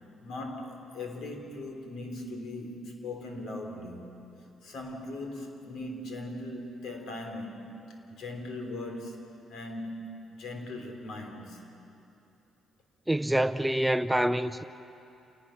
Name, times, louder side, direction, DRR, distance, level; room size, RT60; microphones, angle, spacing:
voice 1, 0.2-4.2 4.6-11.6, left 2 dB, 75° left, 3.4 m, -39 dB
voice 2, 13.1-14.6, right 1 dB, 5° right, 0.5 m, -26 dB
29.0 x 18.5 x 5.9 m
cardioid pair, 90°, 0 cm